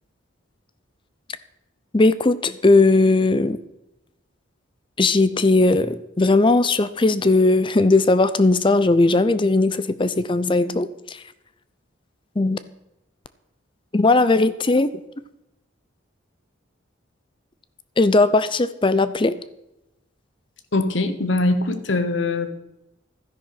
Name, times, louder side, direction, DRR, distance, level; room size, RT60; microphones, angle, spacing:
voice 1, 1.9-3.6 5.0-11.2 12.4-12.6 13.9-14.9 18.0-19.4, left 2 dB, 25° left, 14 dB, 0.5 m, -18 dB
voice 2, 20.7-22.5, left 2 dB, 70° left, 10 dB, 1.2 m, -22 dB
12.5 x 10.5 x 5.9 m, 0.89 s
head